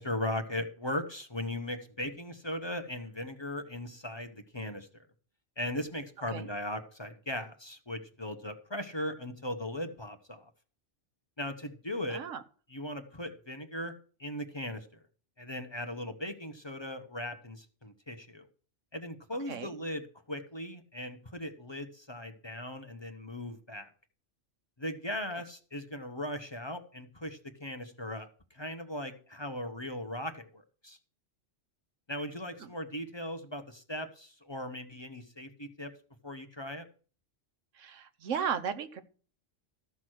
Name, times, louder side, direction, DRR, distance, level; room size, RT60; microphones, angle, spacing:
voice 1, 0.0-5.0 5.6-10.5 11.4-12.2 12.7-13.9 14.2-14.9 15.4-18.5 18.9-23.9 24.8-31.0 32.1-35.9 36.2-36.8, left 1 dB, 25° left, 7 dB, 0.9 m, -38 dB
voice 2, 12.1-12.4 19.5-19.7 32.6-32.7 37.7-39.0, right 7 dB, 90° right, 9 dB, 1.3 m, -35 dB
13.5 x 6.1 x 6.2 m, 0.41 s
omnidirectional pair, 1.3 m